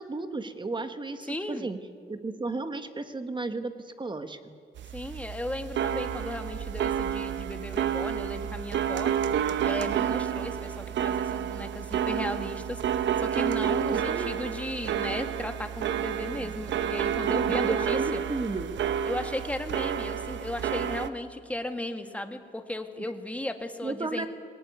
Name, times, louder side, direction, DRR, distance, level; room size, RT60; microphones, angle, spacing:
voice 1, 0.0-1.8 2.1-4.6 13.9-14.4 16.4-16.6 17.5-18.7 23.8-24.3, right 3 dB, 25° right, 9 dB, 1.5 m, -34 dB
voice 2, 1.3-1.7 4.9-9.1 9.6-12.8 13.2-18.2 19.0-24.3, left 1 dB, 5° left, 6 dB, 1.8 m, -35 dB
sound 1, 4.8-21.1, right 9 dB, 65° right, 0.9 m, -30 dB
21.0 x 18.0 x 9.4 m, 2.2 s
cardioid pair, 90°, 20 cm